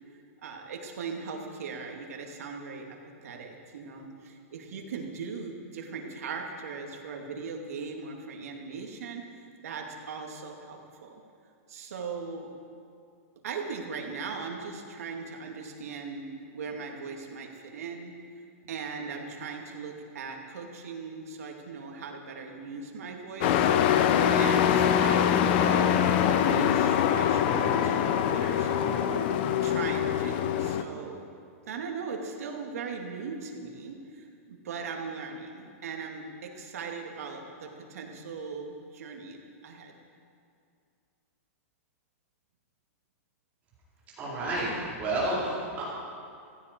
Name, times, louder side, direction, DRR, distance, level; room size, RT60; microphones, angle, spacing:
voice 1, 0.4-11.2 11.7-12.5 13.4-18.1 18.6-24.0 24.3-25.9 26.2-28.8 29.6-31.3 31.7-39.4 39.6-40.0, right 5 dB, 80° right, 1 dB, 2.5 m, -39 dB
Truck, 23.4-30.8, left 9 dB, 40° left, 0.8 m, -24 dB
voice 2, 44.2-45.8, right 2 dB, 20° right, -8 dB, 4.4 m, -30 dB
15.5 x 15.0 x 4.7 m, 2.3 s
supercardioid pair, 160°, 8 cm